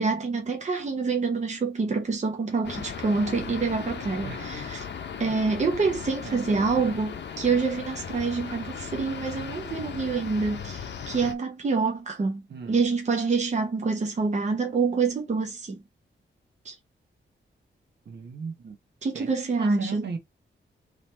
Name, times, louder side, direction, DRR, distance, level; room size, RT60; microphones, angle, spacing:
voice 1, 0.0-4.9 5.2-12.4 12.7-15.8 16.6-16.8 19.0-20.0, right 4 dB, 35° right, 0.9 m, -26 dB
sound 1, 2.6-11.3, left 7 dB, 65° left, 0.8 m, -37 dB
voice 2, 4.2-4.7 5.3-5.4 6.2-7.0 12.5-12.8 18.0-18.8 19.1-19.3 19.6-20.2, right 5 dB, 60° right, 1.2 m, -38 dB
3.9 x 3.2 x 4.2 m
wide cardioid pair, 175°, 20 cm